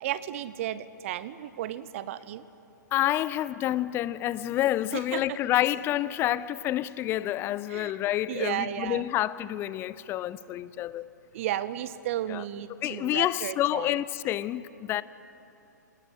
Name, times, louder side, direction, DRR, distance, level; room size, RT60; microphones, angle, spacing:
voice 1, 0.0-2.4 4.9-5.2 7.7-7.9 8.3-9.0 11.3-13.9, right 12 dB, 45° right, 0.8 m, -33 dB
voice 2, 2.9-11.1 12.3-12.4 12.8-15.0, left 13 dB, 25° left, 0.6 m, -28 dB
25.0 x 19.5 x 9.6 m
figure-of-eight pair, 120°, 10 cm